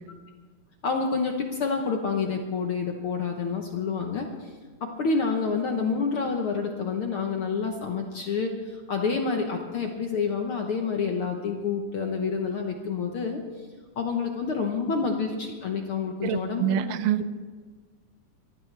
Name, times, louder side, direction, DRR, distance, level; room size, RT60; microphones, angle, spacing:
voice 1, 0.8-4.5 4.8-13.4 14.0-16.8, left 5 dB, 60° left, 3 dB, 1.4 m, -28 dB
voice 2, 16.2-17.3, right 10 dB, 85° right, 13 dB, 2.3 m, -26 dB
23.5 x 15.0 x 3.4 m, 1.5 s
omnidirectional pair, 3.7 m